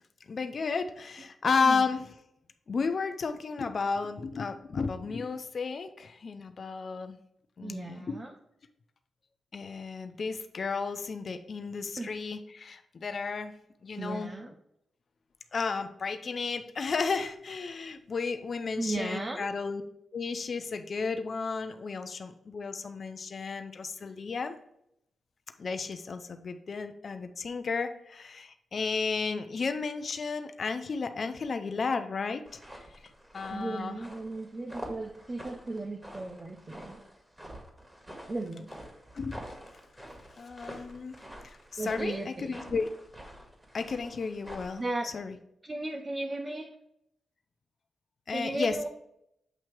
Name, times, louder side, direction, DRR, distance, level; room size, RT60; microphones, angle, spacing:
voice 1, 0.3-2.1 2.7-7.2 7.6-8.3 9.5-13.5 13.8-14.3 15.5-19.8 20.1-24.6 25.6-33.0 33.3-34.0 39.1-39.5 40.4-42.9 43.7-45.4 48.3-48.9, left 4 dB, 55° left, 8 dB, 0.6 m, -33 dB
voice 2, 7.6-8.3 12.0-12.1 13.9-14.5 18.8-19.5 33.5-37.0 38.3-38.7 41.8-42.6 44.8-45.1 45.6-46.7 48.3-48.9, right 2 dB, 30° right, 3 dB, 0.7 m, -35 dB
sound 1, 32.5-44.9, equal, 15° right, 1.8 m, -47 dB
7.9 x 2.9 x 4.6 m, 0.78 s
cardioid pair, 60°, 0 cm